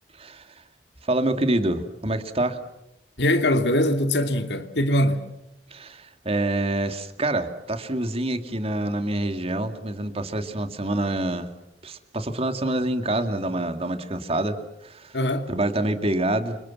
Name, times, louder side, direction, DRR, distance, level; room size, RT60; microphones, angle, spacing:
voice 1, 1.0-2.6 5.7-11.5 11.8-15.2 15.5-16.6, right 1 dB, 35° right, 2.4 m, -26 dB
voice 2, 3.2-5.2 15.1-15.5, left 1 dB, 75° left, 2.6 m, -22 dB
29.0 x 26.0 x 7.3 m
head